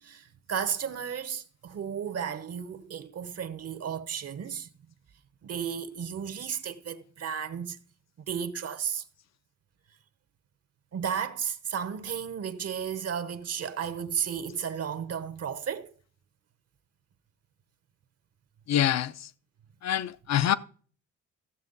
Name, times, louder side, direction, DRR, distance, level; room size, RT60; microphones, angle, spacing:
voice 1, 0.0-4.7 5.4-7.8 8.3-9.0 10.9-15.9, right 7 dB, 55° right, 1.1 m, -33 dB
voice 2, 18.7-19.1 19.8-20.5, left 11 dB, 60° left, 0.7 m, -25 dB
14.5 x 7.2 x 4.0 m
cardioid pair, 90°, 30 cm